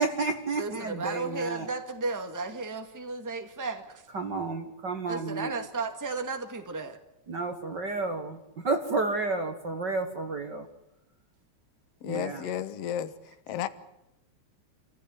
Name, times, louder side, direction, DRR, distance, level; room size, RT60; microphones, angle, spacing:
voice 1, 0.0-1.7 4.1-5.5 7.3-10.7 12.0-12.4, right 3 dB, 40° right, 6 dB, 1.9 m, -31 dB
voice 2, 0.5-4.1 5.1-7.0 12.4-12.6, right 3 dB, 5° right, 6 dB, 1.7 m, -34 dB
voice 3, 12.0-13.1 13.5-13.7, left 10 dB, 60° left, 12 dB, 2.1 m, -32 dB
28.5 x 16.0 x 9.6 m, 0.89 s
omnidirectional pair, 3.4 m